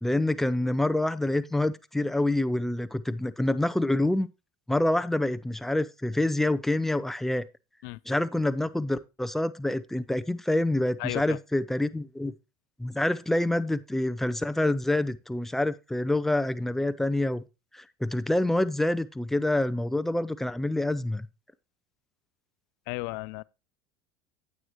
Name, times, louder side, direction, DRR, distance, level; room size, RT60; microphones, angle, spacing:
voice 1, 0.0-4.3 4.7-7.4 8.1-12.3 12.8-17.4 17.7-21.3, left 1 dB, 5° left, 0.4 m, -27 dB
voice 2, 11.0-11.4 22.9-23.4, left 25 dB, 70° left, 0.4 m, -34 dB
9.2 x 8.1 x 3.0 m
supercardioid pair, 125°, 10 cm